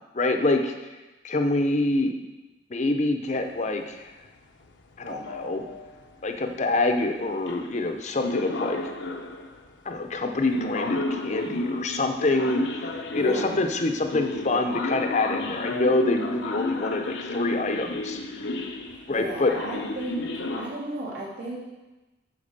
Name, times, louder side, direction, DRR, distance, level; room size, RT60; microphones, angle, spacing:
voice 1, 0.1-0.7 1.2-2.1 2.7-4.1 5.0-5.6 6.2-8.8 9.9-18.2 19.1-19.5, left 2 dB, 40° left, 5 dB, 0.6 m, -26 dB
sound 1, 5.1-6.0 7.0-7.1 7.5-7.8 8.2-9.6 10.5-20.7, left 2 dB, 85° left, 0.8 m, -32 dB
voice 2, 13.1-13.6 18.9-20.3 20.6-21.6, right 1 dB, 75° right, -5 dB, 2.8 m, -34 dB
8.5 x 4.8 x 6.6 m, 1.1 s
head